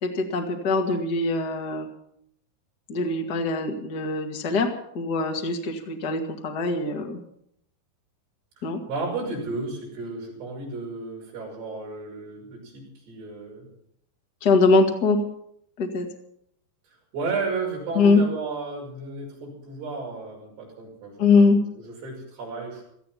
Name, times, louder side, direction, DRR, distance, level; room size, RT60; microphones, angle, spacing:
voice 1, 0.0-1.9 2.9-4.7 4.9-7.2 8.6-8.8 14.4-15.2 15.8-16.1 17.9-18.2 21.2-21.6, left 3 dB, 45° left, 3 dB, 1.2 m, -22 dB
voice 2, 8.6-13.7 17.1-22.8, right 3 dB, 60° right, -1 dB, 8.0 m, -33 dB
18.0 x 14.0 x 5.8 m, 0.71 s
omnidirectional pair, 5.4 m